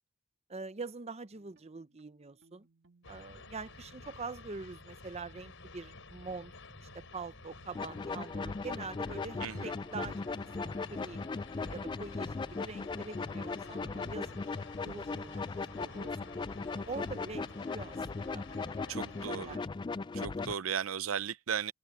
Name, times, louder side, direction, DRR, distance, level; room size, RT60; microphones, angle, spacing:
voice 1, 0.5-2.7 3.1-6.5 6.8-11.2 11.6-14.5 14.8-15.5 15.8-16.3 16.7-18.5 18.7-19.0 19.3-19.7, right 4 dB, 30° right, 0.7 m, -44 dB
sound 1, 1.3-20.8, right 2 dB, 55° right, 2.0 m, -66 dB
sound 2, 3.0-19.6, left 3 dB, 65° left, 6.7 m, -51 dB
sound 3, 7.7-20.5, left 4 dB, 20° left, 0.3 m, -38 dB
voice 2, 9.4-9.7 18.9-19.6 20.1-21.7, right 8 dB, 80° right, 0.6 m, -36 dB
open air
head